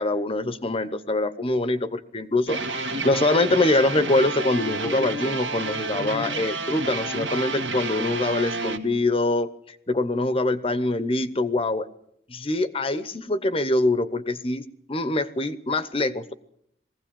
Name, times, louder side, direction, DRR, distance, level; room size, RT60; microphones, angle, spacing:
voice 1, 0.0-11.9 12.3-16.3, left 2 dB, 30° left, 13 dB, 0.9 m, -24 dB
sound 1, 2.5-8.8, right 3 dB, 75° right, 2.0 m, -30 dB
20.5 x 16.0 x 8.7 m, 0.72 s
head